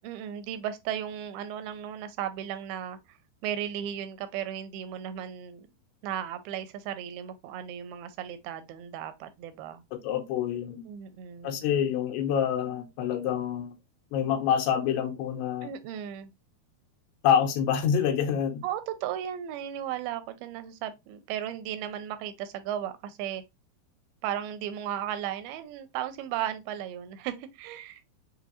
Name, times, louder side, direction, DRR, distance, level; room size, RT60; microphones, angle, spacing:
voice 1, 0.0-3.2 3.4-5.7 6.0-9.8 10.9-11.7 15.6-16.3 18.6-23.4 24.2-28.0, right 10 dB, 85° right, 2.2 m, -35 dB
voice 2, 9.9-10.8 11.4-13.8 14.1-15.7 17.2-18.6, left 8 dB, 85° left, 2.9 m, -27 dB
6.4 x 2.6 x 2.8 m
omnidirectional pair, 4.7 m